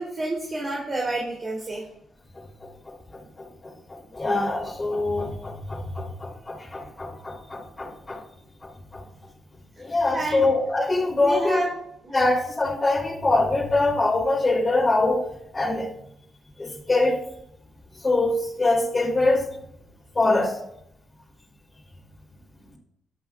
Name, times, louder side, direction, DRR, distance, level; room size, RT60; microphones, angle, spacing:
voice 1, 0.0-1.8 10.1-10.4 11.1-11.7 12.0-12.1, right 2 dB, 30° right, -3 dB, 3.1 m, -29 dB
voice 2, 2.9-8.2 8.6-9.0 9.8-11.6 12.1-15.2 15.5-15.9 16.6-17.2 18.0-19.5 20.1-20.6, left 2 dB, 25° left, -1 dB, 3.0 m, -24 dB
20.0 x 10.5 x 2.4 m, 0.81 s
cardioid pair, 90°, 0 cm